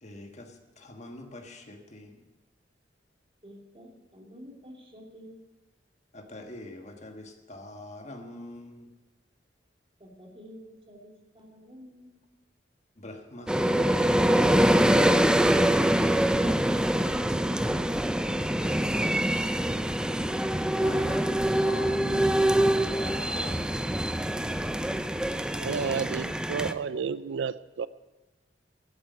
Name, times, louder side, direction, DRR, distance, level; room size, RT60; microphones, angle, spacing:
voice 1, 0.0-2.3 6.1-8.9 12.9-15.7 20.8-24.1, left 2 dB, 40° left, 4 dB, 1.5 m, -43 dB
voice 2, 3.4-5.4 10.0-12.2, equal, 30° right, -1 dB, 3.0 m, -50 dB
sound 1, 13.5-26.7, right 1 dB, 5° right, 0.4 m, -24 dB
voice 3, 25.6-27.9, right 6 dB, 85° right, 16 dB, 0.4 m, -31 dB
12.5 x 8.0 x 9.4 m, 1.1 s
head